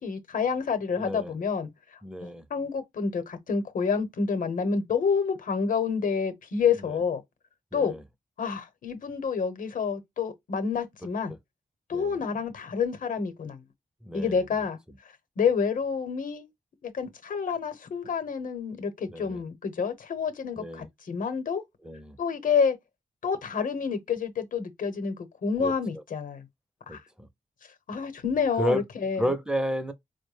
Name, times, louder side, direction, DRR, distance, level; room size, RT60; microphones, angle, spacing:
voice 1, 0.0-1.7 2.2-7.2 7.7-7.9 8.4-11.3 11.9-13.6 14.1-14.8 15.4-16.5 16.8-21.6 22.2-22.8 23.2-26.4 26.9-27.0 27.9-29.3, left 6 dB, 90° left, 0.8 m, -28 dB
voice 2, 1.0-1.3 2.0-2.4 6.9-7.0 7.7-8.0 11.9-12.1 14.0-14.4 19.1-19.4 20.6-20.9 21.8-22.2 25.6-26.0 26.9-27.3 28.6-28.8 29.2-29.9, equal, 5° right, 0.5 m, -31 dB
4.6 x 2.1 x 3.2 m
wide cardioid pair, 125°, 14 cm